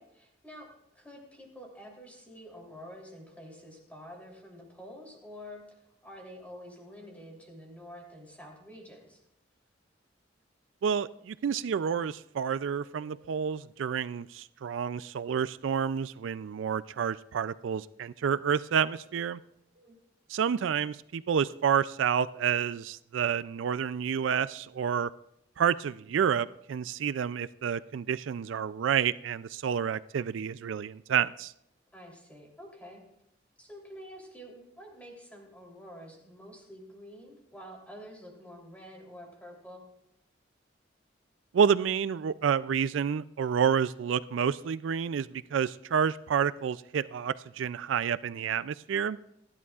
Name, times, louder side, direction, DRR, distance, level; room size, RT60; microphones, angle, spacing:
voice 1, 0.0-9.2 19.8-19.9 31.9-33.0 33.6-39.8, equal, 10° left, 0 dB, 3.2 m, -48 dB
sound 1, 3.0-4.4 7.0-8.4 12.6-14.0 18.6-20.0, right 2 dB, 45° right, 5.3 m, -62 dB
voice 2, 10.8-19.4 20.3-25.1 25.6-31.5 41.5-49.2, right 7 dB, 85° right, 16 dB, 0.4 m, -29 dB
28.0 x 11.0 x 2.4 m, 0.80 s
head